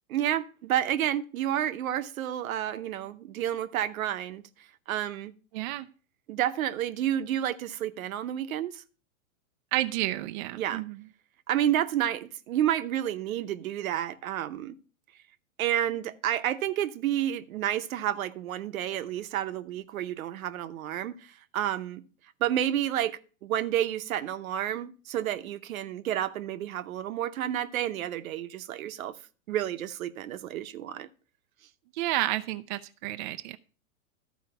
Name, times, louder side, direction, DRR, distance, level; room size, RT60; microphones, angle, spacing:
voice 1, 0.1-4.4 4.9-5.3 6.3-8.8 10.6-10.8 11.5-14.8 15.6-22.0 22.4-29.2 29.5-31.1, right 11 dB, 70° right, 0.9 m, -30 dB
voice 2, 5.5-5.9 9.7-11.0 31.9-33.6, right 16 dB, 35° right, 0.4 m, -30 dB
12.5 x 4.6 x 5.6 m
hypercardioid pair, 130°, 43 cm